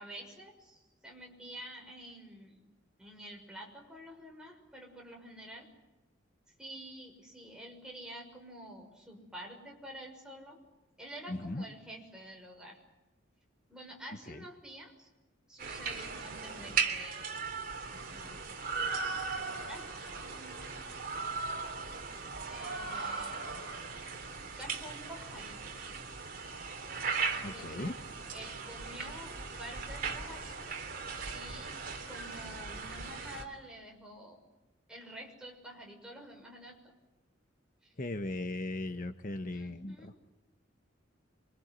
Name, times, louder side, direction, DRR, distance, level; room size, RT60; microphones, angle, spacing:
voice 1, 0.0-2.6 3.0-5.7 6.6-10.6 11.0-12.8 13.7-15.1 15.5-17.4 17.8-18.4 19.5-19.9 20.1-20.8 22.4-24.0 24.6-25.9 27.3-28.0 28.3-30.8 31.3-31.7 32.1-34.4 34.9-36.8 37.8-37.9 39.5-40.1, right 1 dB, 5° right, 0 dB, 6.4 m, -49 dB
voice 2, 11.3-11.6 14.3-14.4 27.4-27.9 38.0-40.1, left 2 dB, 45° left, 7 dB, 1.1 m, -37 dB
sound 1, 15.6-33.4, right 4 dB, 50° right, 3.1 m, -38 dB
28.0 x 25.0 x 8.1 m, 1.0 s
head